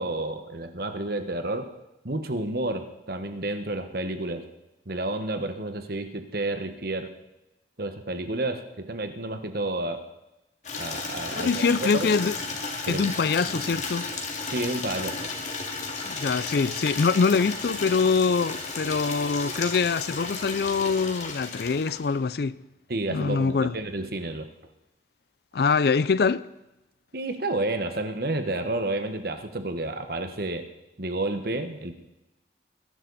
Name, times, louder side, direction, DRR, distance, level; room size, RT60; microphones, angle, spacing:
voice 1, 0.0-1.7 2.0-4.5 4.9-7.1 7.8-10.1 10.8-12.1 12.9-13.1 13.5-13.6 14.5-15.2 22.9-24.5 27.1-30.7 31.0-31.9, right 2 dB, 55° right, 1.3 m, -30 dB
Water tap faucet / Liquid, 10.6-22.2, left 3 dB, 40° left, 2.3 m, -34 dB
voice 2, 11.3-12.3 12.9-14.1 16.1-22.5 23.1-23.7 25.5-26.4, left 5 dB, 60° left, 0.4 m, -24 dB
21.5 x 11.5 x 4.1 m
head